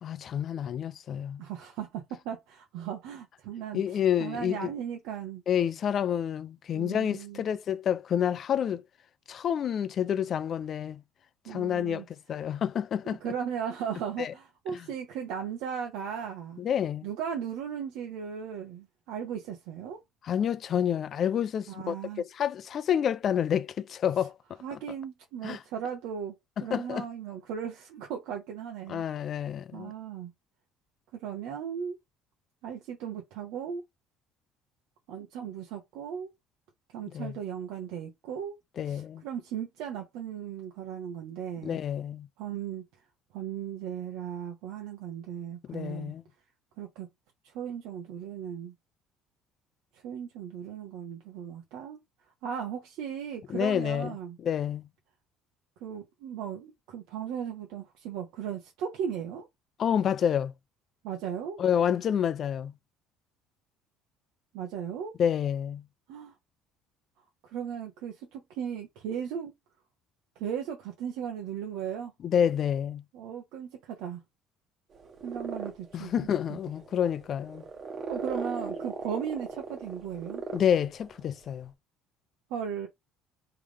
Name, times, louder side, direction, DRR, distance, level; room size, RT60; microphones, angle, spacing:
voice 1, 0.0-1.4 3.7-4.7 5.5-8.8 9.3-11.0 11.5-13.2 14.2-14.3 16.6-17.1 20.2-24.3 24.7-24.8 25.4-25.6 26.7-27.0 28.9-29.9 37.1-37.3 38.8-39.2 41.6-42.3 45.7-46.2 53.5-54.2 54.4-54.8 59.8-60.5 61.6-62.7 65.2-65.8 72.2-73.0 75.9-77.6 80.5-81.7, left 9 dB, 50° left, 0.6 m, -28 dB
voice 2, 1.4-5.4 6.7-7.4 11.4-12.0 12.4-12.6 13.0-16.6 17.0-20.0 21.7-22.2 24.6-29.0 29.7-30.3 31.2-32.0 32.6-33.8 35.1-36.3 36.9-38.6 38.8-41.8 42.4-42.8 43.3-46.1 46.8-47.1 47.4-48.7 49.9-52.0 52.4-54.4 55.8-59.5 61.0-61.6 64.5-65.1 66.1-66.3 67.4-69.5 70.3-72.1 73.1-74.2 75.2-76.6 78.1-80.4 82.5-82.9, right 8 dB, 80° right, 1.2 m, -37 dB
sound 1, 74.9-81.3, right 4 dB, 45° right, 1.4 m, -38 dB
3.6 x 3.3 x 3.4 m
supercardioid pair, 95°, 0 cm